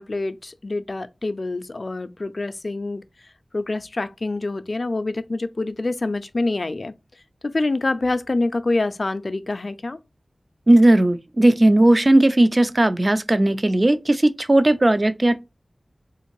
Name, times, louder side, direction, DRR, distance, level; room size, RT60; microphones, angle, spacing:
voice 1, 0.0-3.0 3.5-6.9 7.4-10.0, left 2 dB, 55° left, 0.4 m, -26 dB
voice 2, 10.7-15.4, right 1 dB, 40° right, 0.4 m, -16 dB
3.6 x 2.5 x 3.0 m
wide cardioid pair, 65°, 0 cm